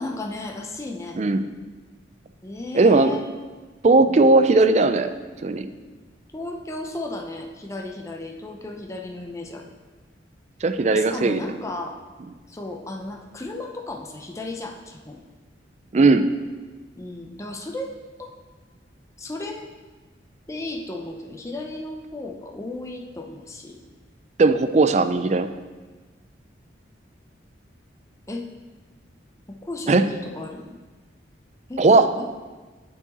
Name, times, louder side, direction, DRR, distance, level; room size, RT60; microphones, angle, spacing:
voice 1, 0.0-1.2 2.4-3.2 4.0-4.4 6.3-9.7 10.9-12.0 12.5-15.2 17.0-18.4 19.2-19.7 20.5-23.8 28.3-28.5 29.6-30.7 31.7-32.3, left 2 dB, 15° left, 1 dB, 0.6 m, -34 dB
voice 2, 1.1-1.5 2.7-3.1 3.8-5.1 5.4-5.7 10.6-11.4 15.9-16.3 24.4-25.5 29.9-30.1 31.8-32.1, right 3 dB, 35° right, 10 dB, 0.4 m, -17 dB
9.8 x 4.7 x 4.1 m, 1.3 s
head